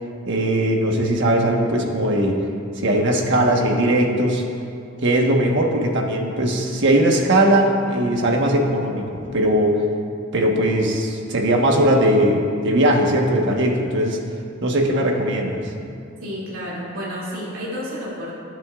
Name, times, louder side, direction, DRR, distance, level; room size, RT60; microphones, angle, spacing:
voice 1, 0.3-2.4 2.8-4.4 5.0-9.8 10.3-14.2 14.6-15.6, right 1 dB, 65° right, 1 dB, 1.3 m, -19 dB
voice 2, 16.2-18.3, equal, 80° right, -7 dB, 2.6 m, -30 dB
18.5 x 9.7 x 2.5 m, 2.5 s
head